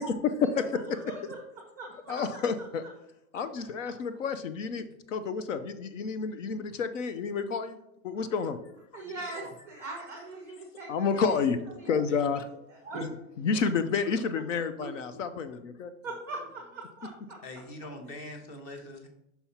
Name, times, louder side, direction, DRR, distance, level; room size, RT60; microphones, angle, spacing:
voice 1, 0.8-1.4 1.8-2.5 6.7-6.8 8.1-8.3 8.9-11.4 11.8-12.0 12.7-13.1 13.4-13.6 14.8-14.9 16.0-17.1, right 2 dB, 5° right, 0 dB, 0.5 m, -41 dB
voice 2, 2.1-2.8 3.3-7.8 8.0-8.6 10.9-11.6 11.9-12.5 13.4-15.9, left 5 dB, 55° left, 10 dB, 0.6 m, -30 dB
voice 3, 17.4-19.1, left 1 dB, 25° left, 5 dB, 0.8 m, -43 dB
5.7 x 4.2 x 5.6 m, 0.84 s
supercardioid pair, 175°, 45 cm